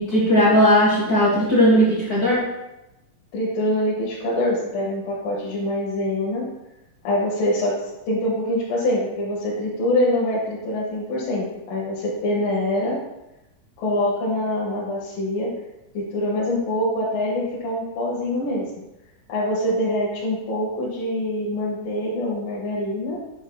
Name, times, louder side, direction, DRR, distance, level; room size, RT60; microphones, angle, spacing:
voice 1, 0.0-2.4, equal, 55° left, -8 dB, 1.0 m, -17 dB
voice 2, 3.3-6.4 7.0-7.8 8.1-13.0 13.8-15.5 15.9-18.7 19.3-23.2, left 1 dB, 75° left, -6 dB, 2.7 m, -24 dB
8.0 x 6.3 x 2.2 m, 0.93 s
omnidirectional pair, 4.1 m